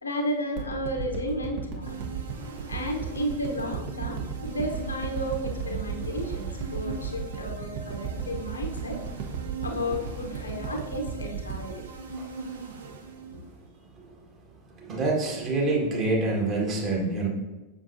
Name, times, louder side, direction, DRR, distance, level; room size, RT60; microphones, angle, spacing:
voice 1, 0.0-2.0 2.7-9.0 9.6-11.8, equal, 75° left, 2 dB, 0.9 m, -33 dB
sound 1, 0.6-12.9 13.3-13.4, right 6 dB, 45° right, 1.2 m, -34 dB
sound 2, 1.8-13.6, right 3 dB, 70° right, 0.9 m, -41 dB
voice 2, 14.8-17.3, right 2 dB, 30° right, -2 dB, 1.8 m, -26 dB
7.0 x 6.3 x 2.7 m, 1.2 s
figure-of-eight pair, 90°, 0 cm